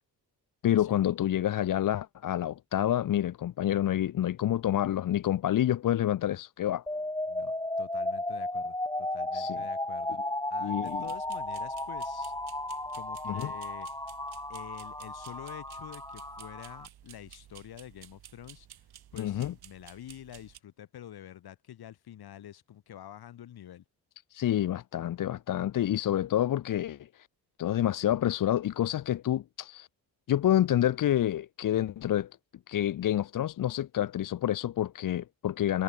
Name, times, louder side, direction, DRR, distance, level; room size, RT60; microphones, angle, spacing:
voice 1, 0.6-6.8 9.3-9.6 10.6-11.0 13.3-13.5 19.2-19.5 24.3-27.3 27.6-29.9 30.3-32.3 32.7-35.8, left 12 dB, 60° left, 0.8 m, -28 dB
sound 1, 6.9-16.9, left 1 dB, 10° left, 4.3 m, -34 dB
voice 2, 7.3-10.2 10.5-12.3 12.9-13.9 14.5-18.8 19.1-23.8, left 11 dB, 75° left, 6.3 m, -47 dB
sound 2, 10.9-20.6, right 11 dB, 80° right, 6.0 m, -53 dB
cardioid pair, 95°, 37 cm